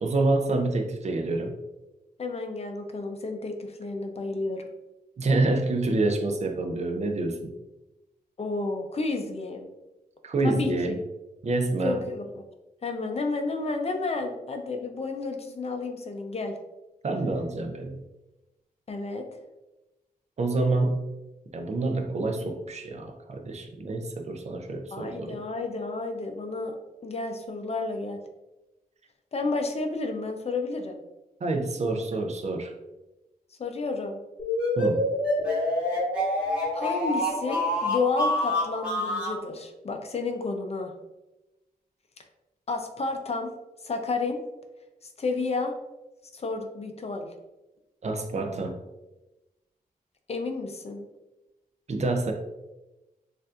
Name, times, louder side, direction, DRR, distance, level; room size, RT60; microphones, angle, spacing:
voice 1, 0.0-1.6 5.2-7.5 10.2-11.0 11.4-12.0 17.0-18.0 20.4-21.0 21.5-25.4 31.4-32.7 34.7-35.0 48.0-48.8 51.9-52.3, right 2 dB, 45° right, 4 dB, 0.5 m, -27 dB
voice 2, 2.2-4.6 8.4-9.7 10.4-10.7 11.8-12.4 12.8-16.5 18.9-19.3 24.9-28.2 29.3-31.0 33.6-34.2 36.7-40.9 42.7-43.5 43.8-44.4 45.2-45.7 46.3-47.3 50.3-51.0, left 3 dB, 40° left, 5 dB, 0.5 m, -31 dB
sound 1, 34.4-39.4, left 1 dB, 10° right, 1.4 m, -27 dB
6.8 x 2.5 x 2.4 m, 1.0 s
wide cardioid pair, 170°, 16 cm